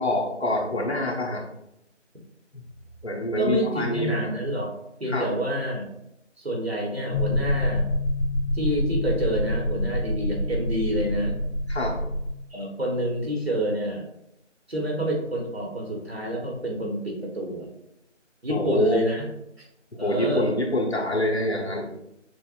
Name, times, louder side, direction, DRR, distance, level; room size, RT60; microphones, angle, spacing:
voice 1, 0.0-1.4 2.5-2.6 3.0-4.3 5.1-5.3 11.7-12.0 18.5-19.0 19.9-21.9, left 1 dB, 60° left, -1 dB, 1.1 m, -26 dB
voice 2, 3.4-4.7 5.0-5.9 6.4-7.9 8.5-11.3 12.5-14.0 14.7-17.7 18.4-19.3 19.6-19.7 20.0-20.5, right 1 dB, 55° right, -1 dB, 1.3 m, -28 dB
sound 1, 7.1-12.3, left 1 dB, 90° left, 0.6 m, -26 dB
6.4 x 2.4 x 2.4 m, 0.83 s
figure-of-eight pair, 170°, 37 cm